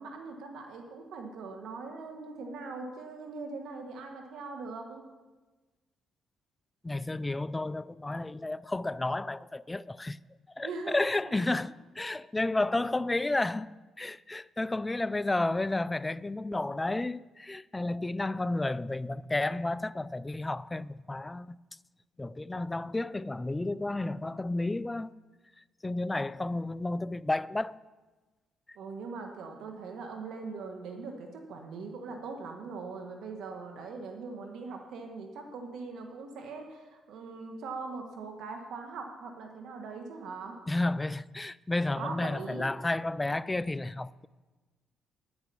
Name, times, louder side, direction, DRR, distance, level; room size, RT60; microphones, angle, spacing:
voice 1, 0.0-5.0 10.6-11.4 28.7-40.6 42.0-42.7, right 4 dB, 80° right, 1.4 m, -41 dB
voice 2, 6.8-10.2 10.6-21.6 22.2-25.1 25.8-27.8 40.7-44.3, left 2 dB, 15° left, 0.3 m, -32 dB
9.9 x 9.5 x 6.9 m
cardioid pair, 90°, 0 cm